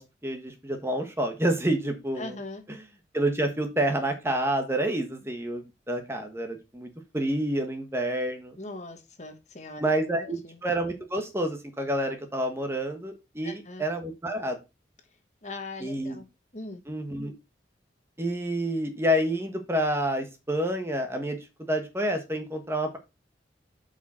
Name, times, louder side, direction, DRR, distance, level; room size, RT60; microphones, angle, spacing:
voice 1, 0.0-2.3 3.1-8.6 9.8-14.6 15.8-16.2 16.9-17.3 18.2-21.4 21.7-23.0, right 1 dB, 15° right, 5 dB, 1.2 m, -28 dB
voice 2, 2.2-2.6 8.6-9.8 10.1-10.6 13.4-13.8 15.4-16.3 16.5-16.8, left 2 dB, 40° left, 6 dB, 1.4 m, -40 dB
8.2 x 5.1 x 4.2 m, 0.26 s
head